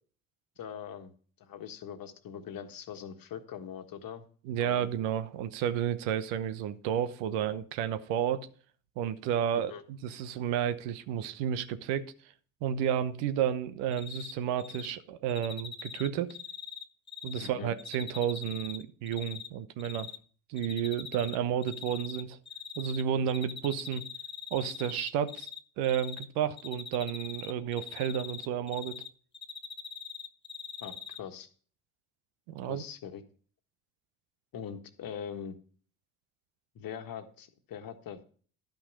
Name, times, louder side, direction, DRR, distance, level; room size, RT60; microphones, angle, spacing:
voice 1, 0.6-1.1 1.4-4.2 4.6-4.8 9.5-9.8 17.4-17.7 30.8-31.5 32.7-33.2 34.5-35.6 36.7-38.2, left 8 dB, 55° left, 1.5 m, -42 dB
voice 2, 4.4-8.5 9.0-12.1 12.6-16.4 17.2-20.1 20.5-22.4 22.8-24.0 24.5-25.5 25.8-29.0 32.5-32.8, right 9 dB, 70° right, 1.0 m, -31 dB
Cricket, 13.9-14.3 14.6-14.9 15.3-17.5 17.8-19.5 19.8-20.2 20.6-21.4 21.6-23.0 23.3-25.6 25.8-26.3 26.6-29.1 29.3-31.2, left 6 dB, 25° left, 1.0 m, -42 dB
12.0 x 5.8 x 5.3 m
hypercardioid pair, 60°, 42 cm